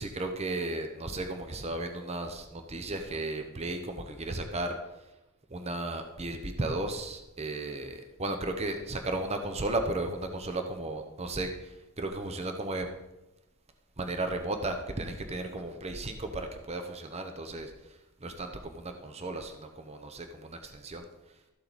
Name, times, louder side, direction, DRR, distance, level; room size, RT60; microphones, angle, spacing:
voice 1, 0.0-4.8 5.5-12.9 14.0-21.1, right 2 dB, 30° right, 5 dB, 0.9 m, -35 dB
13.5 x 7.6 x 4.2 m, 0.99 s
head